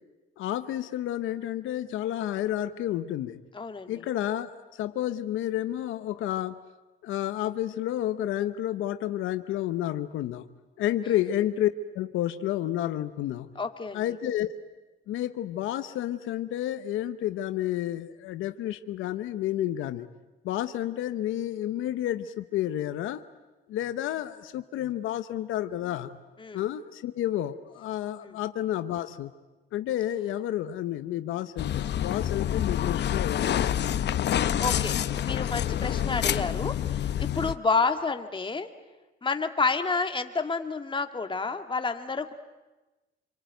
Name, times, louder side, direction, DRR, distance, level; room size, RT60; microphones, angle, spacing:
voice 1, 0.4-3.4 3.9-4.5 4.8-6.6 7.0-10.5 10.8-13.5 13.9-14.5 15.1-20.1 20.4-23.2 23.7-26.2 26.5-29.3 29.7-33.8, left 12 dB, 90° left, 10 dB, 1.0 m, -30 dB
voice 2, 3.5-3.9 11.1-11.2 13.6-14.0 26.4-26.6 28.2-28.3 34.4-38.7 39.2-42.3, left 4 dB, 25° left, 6 dB, 2.0 m, -30 dB
sound 1, 31.6-37.5, left 10 dB, 60° left, 0.9 m, -27 dB
27.0 x 23.0 x 9.2 m, 1.1 s
cardioid pair, 90°, 20 cm